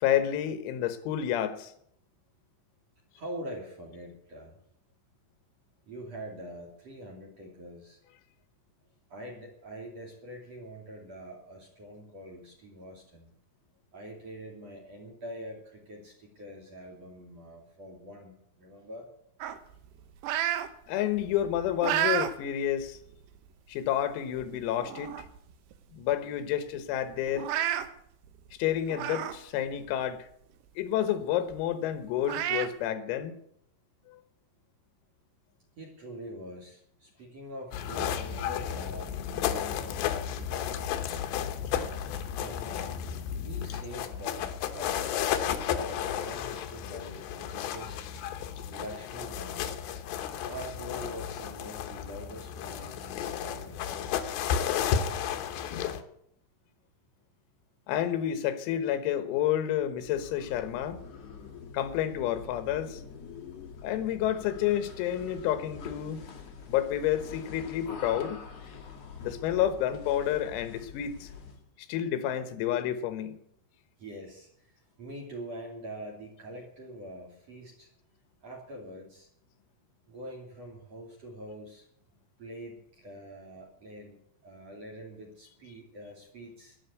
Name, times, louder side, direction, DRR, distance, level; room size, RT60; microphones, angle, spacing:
voice 1, 0.0-1.7 20.9-23.0 23.7-25.3 25.9-27.5 28.6-30.3 30.8-33.4 34.1-34.2 57.9-61.0 61.7-63.0 63.8-66.2 66.7-68.4 69.2-71.3 71.9-73.4, left 11 dB, 90° left, 3.9 m, -29 dB
voice 2, 3.1-4.6 5.8-8.0 9.1-13.4 13.9-19.1 35.8-40.9 42.3-43.0 43.3-44.9 45.7-48.1 48.7-49.7 50.4-54.1 74.0-77.9 78.4-79.3 80.1-81.9 82.4-86.8, equal, 40° right, 2.8 m, -44 dB
sound 1, 19.4-20.7 21.1-22.3 22.8-23.0 23.9-24.0 24.4-24.5 24.8-25.4 25.7-25.8 26.1-26.2 27.3-27.9 28.9-29.4 29.8-29.9 31.5-31.6 32.2-32.7, right 11 dB, 80° right, 2.5 m, -30 dB
sound 2, 37.7-56.0, left 9 dB, 75° left, 2.8 m, -33 dB
sound 3, 59.9-71.7, left 5 dB, 60° left, 1.7 m, -45 dB
12.5 x 10.5 x 8.2 m
omnidirectional pair, 6.0 m